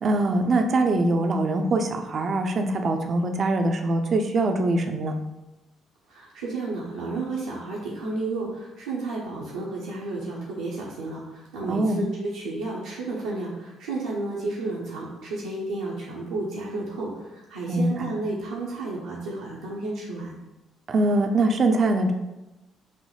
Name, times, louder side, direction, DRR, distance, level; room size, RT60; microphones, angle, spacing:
voice 1, 0.0-5.2 11.7-12.0 17.7-18.0 20.9-22.1, right 2 dB, 45° right, 5 dB, 0.7 m, -23 dB
voice 2, 6.1-20.3, right 2 dB, 75° right, -7 dB, 1.0 m, -32 dB
6.7 x 3.1 x 4.8 m, 1.0 s
figure-of-eight pair, 45°, 0 cm